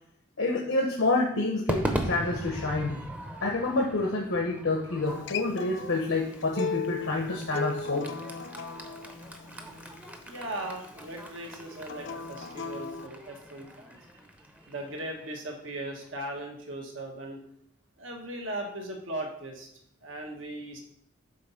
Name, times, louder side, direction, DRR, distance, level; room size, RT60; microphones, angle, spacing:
voice 1, 0.4-3.0 3.4-8.1, left 2 dB, 80° left, -1 dB, 0.9 m, -28 dB
Crowd / Fireworks, 1.7-16.1, right 1 dB, 5° right, 0.6 m, -39 dB
Acoustic guitar, 5.1-10.3 11.8-13.1, left 4 dB, 65° left, 0.5 m, -37 dB
voice 2, 10.2-14.0 14.6-17.4 18.0-19.7 20.0-20.8, right 1 dB, 75° right, 2 dB, 1.2 m, -38 dB
5.3 x 4.0 x 5.6 m, 0.70 s
head